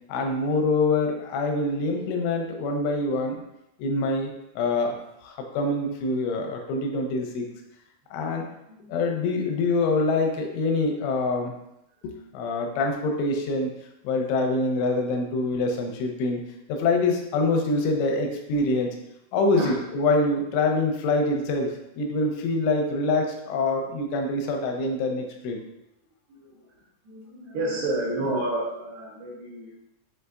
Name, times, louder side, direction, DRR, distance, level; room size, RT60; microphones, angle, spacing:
voice 1, 0.1-3.4 3.8-4.3 4.6-5.0 5.2-7.5 8.1-8.5 8.9-11.5 12.0-13.7 14.0-16.4 16.7-19.0 19.3-25.6, left 2 dB, 85° left, 2 dB, 3.0 m, -25 dB
voice 2, 26.3-26.7 27.0-29.8, right 1 dB, 75° right, -4 dB, 2.7 m, -30 dB
7.5 x 2.7 x 2.4 m, 0.85 s
omnidirectional pair, 5.5 m